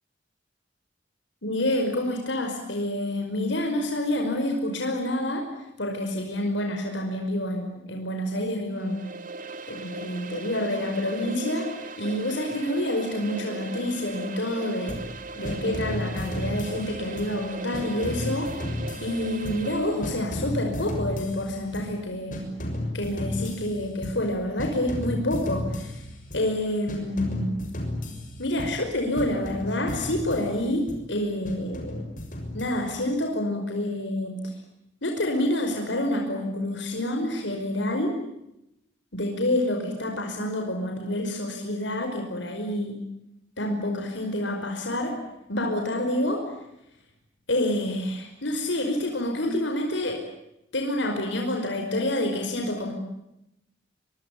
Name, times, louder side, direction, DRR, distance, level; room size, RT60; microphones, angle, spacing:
voice 1, 1.4-5.5 5.8-9.1 9.7-15.0 15.4-22.5 22.9-26.0 26.3-27.6 28.4-32.0 32.5-34.4 35.0-38.2 39.1-43.0 43.6-45.2 45.5-46.4 47.5-50.2 50.7-52.9, left 1 dB, 75° left, 3 dB, 5.3 m, -28 dB
sound 1, 8.7-20.4, right 3 dB, 45° right, 2.5 m, -38 dB
sound 2, 14.9-15.2 15.5-17.4 17.7-19.8 20.0-22.0 22.3-24.3 24.6-26.5 26.9-28.9 29.2-31.1 31.5-33.1, left 1 dB, 45° left, 6.5 m, -34 dB
25.5 x 24.0 x 8.6 m, 0.85 s
head